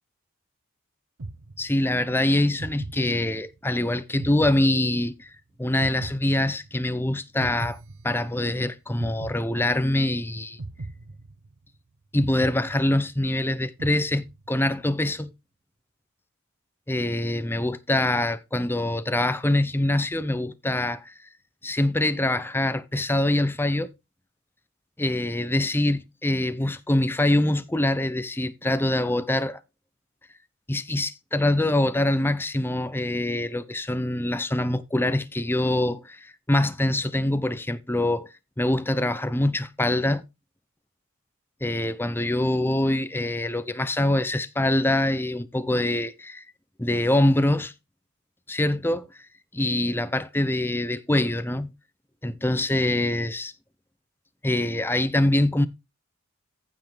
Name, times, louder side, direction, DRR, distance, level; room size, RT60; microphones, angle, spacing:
sound 1, 1.2-2.1 2.6-3.7 4.2-5.4 5.8-7.0 7.4-8.6 9.0-10.1 10.6-11.8 12.2-13.4 13.8-14.7, right 2 dB, 80° right, 1.0 m, -39 dB
voice 1, 1.6-5.3 5.6-7.8 8.0-10.6 12.1-15.3 16.9-21.1 21.6-23.9 25.0-29.6 30.7-38.3 38.6-40.2 41.6-46.4 46.8-47.7 48.5-49.1 49.5-51.7 52.2-53.5 54.4-55.7, left 1 dB, 10° left, 0.6 m, -24 dB
15.0 x 5.7 x 3.3 m
head